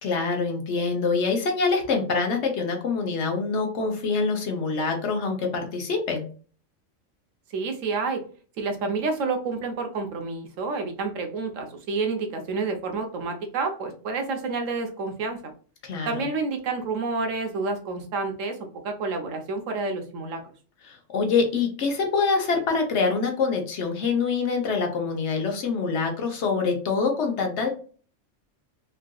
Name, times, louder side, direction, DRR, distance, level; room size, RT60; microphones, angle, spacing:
voice 1, 0.0-6.2 15.8-16.2 20.8-27.7, left 4 dB, 65° left, 3 dB, 1.1 m, -25 dB
voice 2, 7.5-8.2 8.6-15.4 16.1-18.6 18.8-20.4, right 4 dB, 85° right, 4 dB, 1.1 m, -29 dB
3.7 x 2.4 x 2.3 m, 0.41 s
omnidirectional pair, 1.3 m